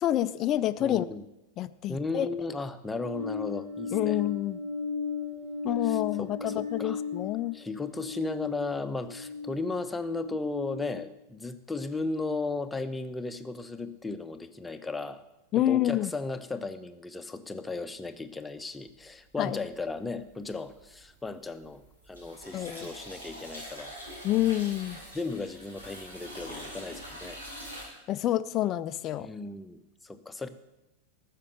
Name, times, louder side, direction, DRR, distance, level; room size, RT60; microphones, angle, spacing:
voice 1, 0.0-1.0 1.6-2.3 3.9-4.6 5.6-7.6 15.5-16.1 19.4-19.6 22.5-22.9 24.2-25.0 28.1-29.3, left 13 dB, 35° left, 13 dB, 0.4 m, -28 dB
voice 2, 0.8-1.2 1.9-4.2 5.8-7.0 7.5-15.2 15.6-24.0 25.1-27.4 29.2-30.5, left 3 dB, 10° left, 9 dB, 0.8 m, -35 dB
sound 1, 2.9-11.0, left 5 dB, 45° right, 1.3 m, -36 dB
sound 2, 19.7-20.3 20.6-27.8, equal, 75° right, 4.9 m, -44 dB
14.0 x 6.6 x 7.9 m, 0.94 s
figure-of-eight pair, 90°, 0 cm